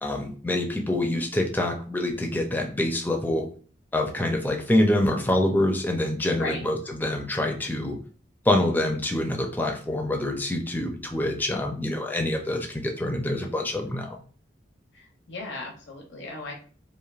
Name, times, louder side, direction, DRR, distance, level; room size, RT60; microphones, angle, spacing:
voice 1, 0.0-3.5 3.9-8.0 8.5-14.2, left 1 dB, 10° left, 2 dB, 0.4 m, -26 dB
voice 2, 6.3-6.7 14.9-16.5, left 2 dB, 75° left, 0 dB, 0.8 m, -36 dB
3.1 x 2.5 x 2.4 m, 0.42 s
head